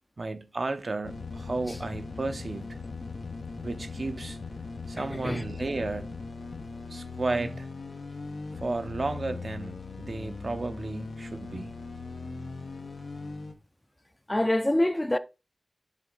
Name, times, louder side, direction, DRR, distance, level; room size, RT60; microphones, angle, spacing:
voice 1, 0.2-2.8 3.6-4.4 4.9-6.2 6.9-7.7 8.6-11.7, right 3 dB, 60° right, 0.6 m, -33 dB
sound 1, 1.0-13.5, left 3 dB, 85° left, 0.9 m, -39 dB
voice 2, 5.0-5.4 14.3-15.2, left 1 dB, 20° left, 0.5 m, -26 dB
7.4 x 3.5 x 3.8 m
cardioid pair, 50°, 0 cm